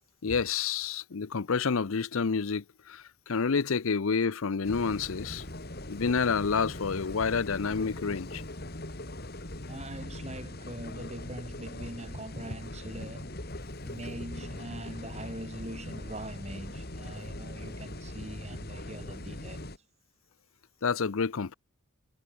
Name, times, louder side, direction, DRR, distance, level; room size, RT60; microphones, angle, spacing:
voice 1, 0.2-5.4 5.9-8.4 20.8-21.5, left 5 dB, 65° left, 0.6 m, -29 dB
sound 1, 4.6-19.8, left 1 dB, 45° left, 2.8 m, -41 dB
voice 2, 9.7-13.3 13.8-19.7, right 1 dB, 30° right, 5.8 m, -42 dB
head